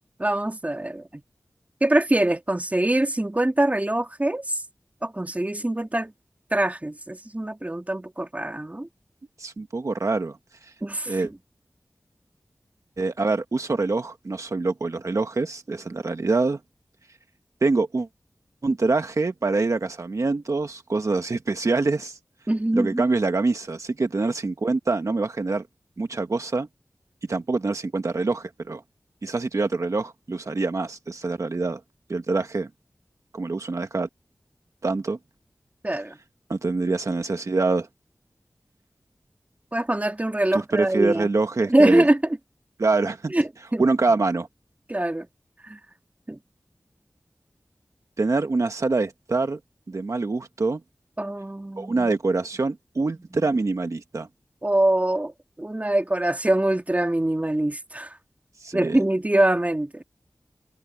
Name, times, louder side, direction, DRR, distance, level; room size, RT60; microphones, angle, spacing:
voice 1, 0.2-1.2 1.8-4.6 5.0-6.1 6.5-8.9 10.8-11.2 22.5-23.1 35.8-36.2 39.7-41.3 41.7-42.4 43.3-43.9 44.9-45.3 45.6-45.8 46.3-46.4 51.2-52.1 53.3-53.4 54.6-55.3 55.6-58.2 58.7-60.0, right 1 dB, 25° right, 2.5 m, -23 dB
voice 2, 9.4-10.4 11.1-11.3 13.0-16.6 17.6-18.1 18.6-22.2 22.7-25.6 26.0-26.7 27.3-28.8 29.2-31.8 32.1-32.7 33.3-34.1 34.8-35.2 36.5-37.9 40.5-42.0 42.8-43.3 43.8-44.5 48.2-49.6 49.9-50.8 51.8-54.3 58.6-59.0, right 3 dB, 65° right, 1.4 m, -25 dB
cardioid pair, 40°, 6 cm